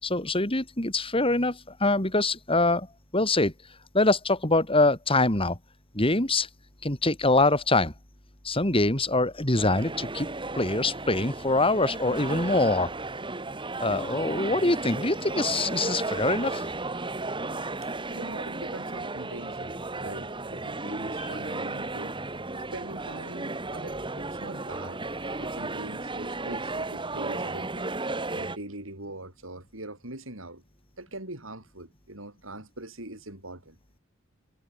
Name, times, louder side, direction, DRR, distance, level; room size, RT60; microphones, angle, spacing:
voice 1, 0.0-2.9 3.1-3.5 3.9-5.6 5.9-6.5 6.8-7.9 8.4-10.3 10.5-12.9 13.8-16.6 21.2-21.3, left 2 dB, 25° left, 5.0 m, -24 dB
sound 1, 9.6-28.6, right 2 dB, 25° right, 2.4 m, -34 dB
voice 2, 17.8-19.8 20.0-22.2 22.7-25.0 25.4-27.9 28.3-30.6 31.0-33.8, right 1 dB, 75° right, 7.9 m, -42 dB
head